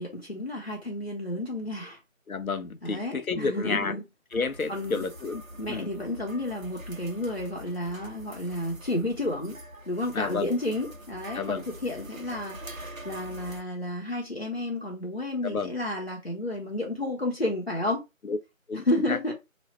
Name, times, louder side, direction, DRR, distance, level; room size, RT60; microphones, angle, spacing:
voice 1, 0.0-2.0 2.8-4.0 4.7-5.0 5.6-9.6 9.9-18.0 18.7-19.3, left 1 dB, 45° left, 0.9 m, -31 dB
voice 2, 2.3-4.0 4.3-5.4 5.7-5.9 10.1-10.5 11.3-11.6 15.4-15.7 18.2-18.4 18.7-19.2, left 4 dB, 85° left, 0.8 m, -30 dB
sound 1, 4.3-13.6, right 1 dB, 75° right, 1.1 m, -44 dB
3.1 x 2.4 x 4.3 m
figure-of-eight pair, 180°, 41 cm